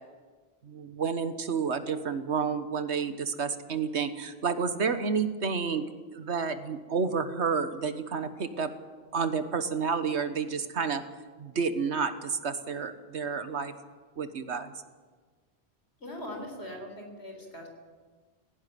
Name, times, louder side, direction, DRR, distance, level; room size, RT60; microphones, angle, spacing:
voice 1, 0.6-5.8 6.1-8.7 9.1-11.0 11.4-13.7 14.2-14.7, right 5 dB, 85° right, 10 dB, 1.6 m, -30 dB
voice 2, 16.0-17.7, left 1 dB, 75° left, 2 dB, 4.5 m, -40 dB
18.0 x 16.0 x 9.4 m, 1.5 s
omnidirectional pair, 1.1 m